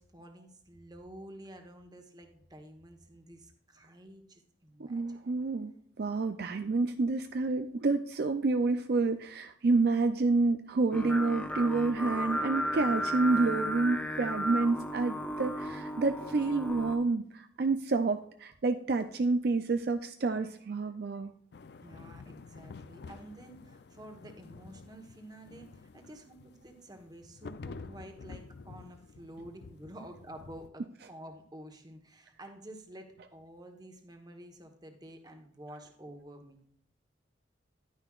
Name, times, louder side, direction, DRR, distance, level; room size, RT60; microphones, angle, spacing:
voice 1, 0.0-5.4 21.8-36.7, right 1 dB, 20° right, 4 dB, 1.2 m, -50 dB
voice 2, 4.8-5.7 6.0-21.3, right 3 dB, 55° right, 8 dB, 0.4 m, -29 dB
Singing, 10.9-17.0, equal, 5° left, 0.6 m, -34 dB
sound 1, 21.5-30.7, left 4 dB, 60° left, 0.4 m, -49 dB
11.0 x 9.6 x 2.4 m, 0.66 s
head